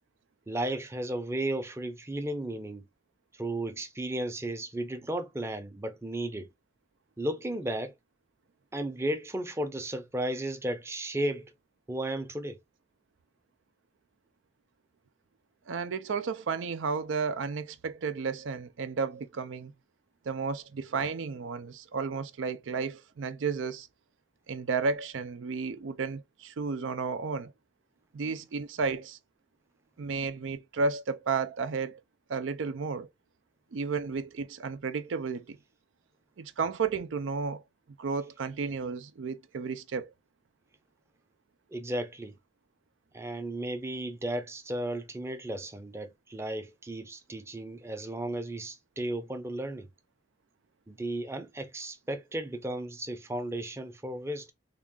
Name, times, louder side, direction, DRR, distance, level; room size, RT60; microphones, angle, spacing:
voice 1, 0.5-2.8 3.3-6.5 7.2-7.9 8.7-11.5 11.9-12.6 41.7-42.4 43.1-49.9 50.9-54.5, right 1 dB, 15° right, 0.6 m, -34 dB
voice 2, 15.7-19.7 20.3-23.9 24.5-27.5 28.1-29.2 30.0-32.0 32.3-33.1 33.7-35.6 36.4-37.6 38.0-40.1, right 5 dB, 75° right, 0.4 m, -32 dB
3.6 x 2.4 x 3.6 m
head